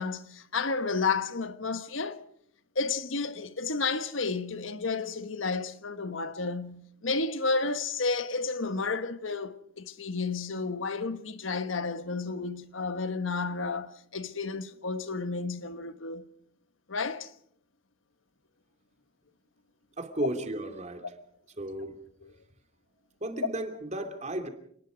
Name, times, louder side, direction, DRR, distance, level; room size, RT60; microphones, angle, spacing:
voice 1, 0.0-2.2 2.7-16.3 16.9-17.3 22.2-22.3, left 4 dB, 80° left, 1.4 m, -31 dB
voice 2, 20.0-21.1 21.6-22.0 23.2-24.5, right 1 dB, 35° right, 2.7 m, -34 dB
29.0 x 19.5 x 5.1 m
head